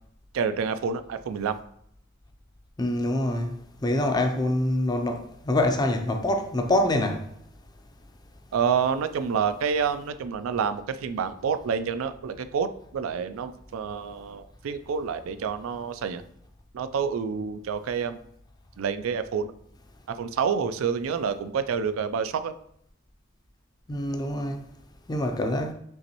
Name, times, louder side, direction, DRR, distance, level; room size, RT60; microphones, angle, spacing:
voice 1, 0.3-1.6 8.5-16.2 16.7-18.2 18.8-19.5 20.2-22.5, right 6 dB, 90° right, 0.3 m, -28 dB
voice 2, 2.8-3.6 3.8-7.2 23.9-24.6 25.1-25.7, left 1 dB, 20° left, 0.4 m, -25 dB
5.5 x 3.0 x 2.9 m
head